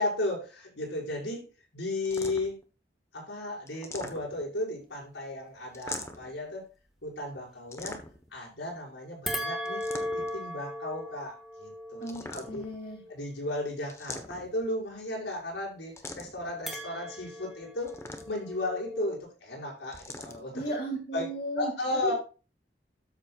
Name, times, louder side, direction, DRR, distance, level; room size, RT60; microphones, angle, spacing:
voice 1, 0.0-1.5 1.7-2.5 3.1-6.6 7.0-8.0 8.3-9.9 10.1-12.6 13.1-17.9 18.3-20.6 21.1-21.3 21.6-22.1, left 2 dB, 85° left, -4 dB, 5.9 m, -34 dB
sound 1, 2.0-2.6 3.7-4.6 5.7-6.4 7.7-8.3 9.6-10.4 12.0-12.8 13.9-14.7 16.0-16.5 17.8-18.6 19.9-20.4, left 2 dB, 15° left, 1.1 m, -42 dB
sound 2, 9.3-13.7 16.7-19.2, left 1 dB, ahead, 1.6 m, -38 dB
voice 2, 12.0-13.0 20.5-21.7 22.0-22.1, right 1 dB, 50° left, -3 dB, 2.4 m, -34 dB
13.0 x 7.6 x 2.4 m, 0.34 s
head